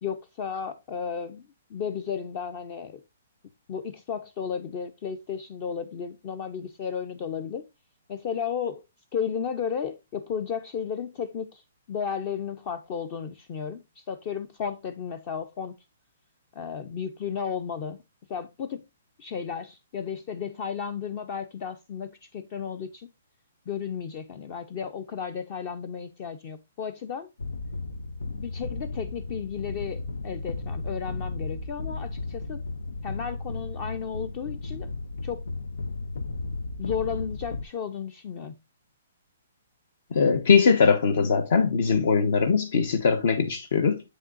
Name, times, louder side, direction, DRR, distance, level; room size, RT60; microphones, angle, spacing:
voice 1, 0.0-1.4 1.7-3.0 3.7-7.6 8.1-8.8 9.1-11.6 11.9-15.7 16.5-18.0 18.3-18.8 19.2-23.1 23.7-27.3 28.2-32.6 33.0-34.9 35.2-35.4 36.8-38.5, left 7 dB, 30° left, 0.6 m, -33 dB
sound 1, 27.4-37.7, left 3 dB, 90° left, 0.7 m, -34 dB
voice 2, 40.1-44.0, left 5 dB, 55° left, 1.1 m, -21 dB
7.9 x 6.5 x 2.5 m
hypercardioid pair, 160°, 0 cm